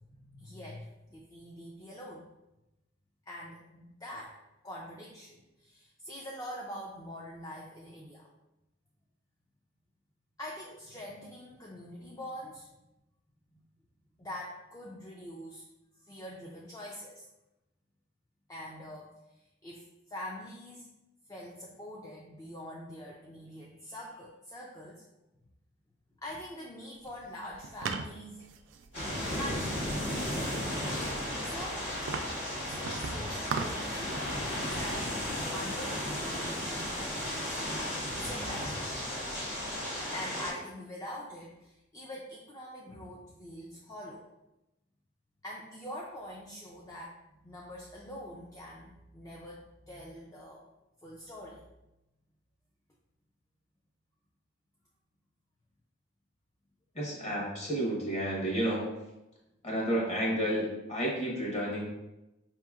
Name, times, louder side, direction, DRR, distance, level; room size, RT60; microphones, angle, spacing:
voice 1, 0.0-2.3 3.3-4.4 4.6-8.3 10.4-12.7 13.5-13.6 14.2-15.7 16.0-17.2 18.5-19.8 20.1-20.9 21.3-25.1 26.2-28.4 29.3-30.0 31.4-31.9 32.6-35.2 35.5-37.8 38.1-39.0 39.6-44.3 45.4-47.2 47.4-50.6 51.0-51.6, equal, 15° left, -3 dB, 0.3 m, -44 dB
sound 1, 27.0-34.1 34.4-35.3, right 5 dB, 65° right, 0.3 m, -41 dB
sound 2, 28.9-40.5, left 1 dB, 70° left, 1.3 m, -34 dB
voice 2, 56.9-58.9 59.6-61.9, right 1 dB, 35° left, -3 dB, 1.1 m, -31 dB
4.8 x 2.9 x 2.4 m, 0.96 s
head